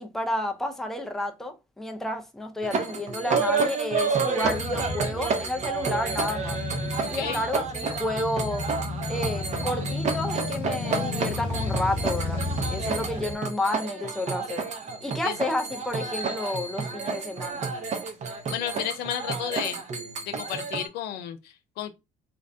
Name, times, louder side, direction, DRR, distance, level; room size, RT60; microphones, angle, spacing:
voice 1, 0.0-6.6 7.1-8.7 9.1-12.4 12.7-14.7 15.0-17.7, left 1 dB, ahead, 0.4 m, -31 dB
sound 1, 2.6-20.9, right 4 dB, 40° right, 0.7 m, -30 dB
Male speech man speaking / Motorcycle / Idling, 4.4-13.4, left 3 dB, 30° left, 1.0 m, -33 dB
voice 2, 7.0-7.4 15.2-15.4 18.5-19.8 20.3-21.9, left 10 dB, 70° left, 0.4 m, -32 dB
2.5 x 2.0 x 2.4 m
supercardioid pair, 75°, 17 cm